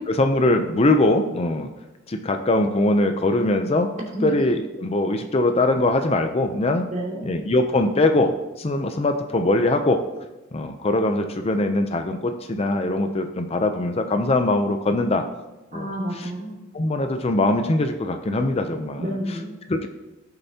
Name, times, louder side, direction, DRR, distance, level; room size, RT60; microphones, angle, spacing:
voice 1, 0.1-1.7 2.1-3.9 4.2-6.8 7.3-10.1 10.5-15.3 15.7-15.9 16.7-19.1 19.7-19.9, left 2 dB, 30° left, 6 dB, 0.5 m, -22 dB
voice 2, 4.0-4.4 6.9-7.3 15.7-16.6 19.0-19.6, right 1 dB, 40° right, -3 dB, 2.7 m, -30 dB
16.5 x 6.7 x 2.8 m, 1.0 s
head